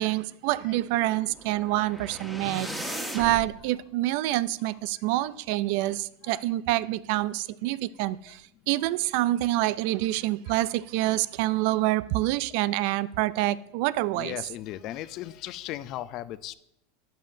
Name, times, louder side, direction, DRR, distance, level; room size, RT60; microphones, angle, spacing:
voice 1, 0.0-2.7 3.1-14.4, right 16 dB, 60° right, 0.4 m, -27 dB
sound 1, 1.3-3.5, right 1 dB, 5° right, 1.4 m, -37 dB
voice 2, 14.2-16.6, left 13 dB, 45° left, 0.4 m, -37 dB
12.5 x 8.9 x 2.7 m
supercardioid pair, 130°, 0 cm